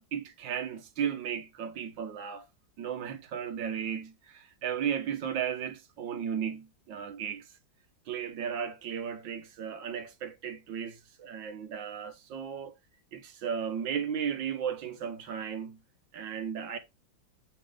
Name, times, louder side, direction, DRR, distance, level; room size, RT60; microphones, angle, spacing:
voice 1, 0.0-2.4 2.8-7.5 8.1-12.7 13.1-15.8 16.1-16.8, right 8 dB, 75° right, 1.6 m, -35 dB
7.4 x 3.9 x 4.9 m
omnidirectional pair, 2.1 m